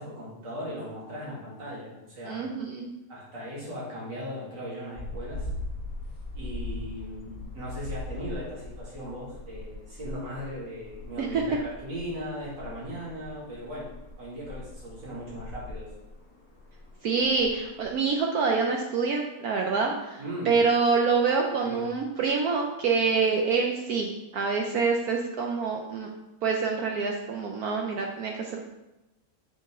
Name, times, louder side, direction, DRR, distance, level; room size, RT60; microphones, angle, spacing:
voice 1, 0.0-2.5 3.1-5.5 6.3-13.9 14.2-15.9 20.2-20.5 21.6-21.9, equal, 85° right, -6 dB, 2.9 m, -38 dB
voice 2, 2.3-2.9 11.2-11.4 17.0-26.1 26.4-28.6, right 5 dB, 65° right, 1 dB, 1.1 m, -26 dB
sound 1, 5.0-18.2, left 2 dB, 20° left, 1.6 m, -40 dB
7.6 x 5.2 x 3.6 m, 0.97 s
omnidirectional pair, 1.9 m